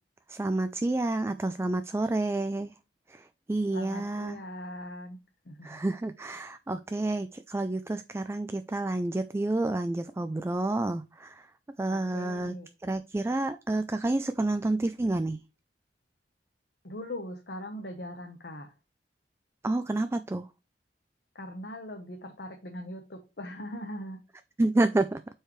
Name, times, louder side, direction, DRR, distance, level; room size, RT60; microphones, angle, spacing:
voice 1, 0.3-2.7 3.1-4.4 5.6-11.5 11.8-12.5 12.8-15.4 19.6-20.5 24.6-25.2, right 2 dB, 15° right, 0.3 m, -29 dB
voice 2, 3.7-5.2 5.4-5.8 11.9-12.7 16.8-18.7 21.3-24.2, left 1 dB, 65° left, 1.1 m, -40 dB
7.8 x 4.7 x 3.1 m
head